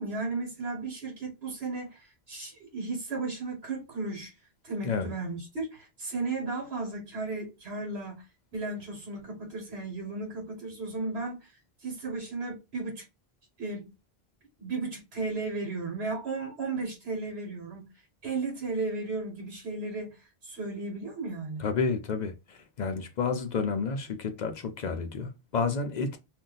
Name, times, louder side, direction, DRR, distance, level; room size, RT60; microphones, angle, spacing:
voice 1, 0.0-4.3 4.6-8.2 8.5-11.5 11.8-13.0 13.6-13.9 14.6-17.9 18.2-21.7, right 3 dB, 80° right, 1.3 m, -35 dB
voice 2, 21.6-26.2, left 5 dB, 55° left, 0.6 m, -30 dB
2.7 x 2.2 x 3.8 m
omnidirectional pair, 1.1 m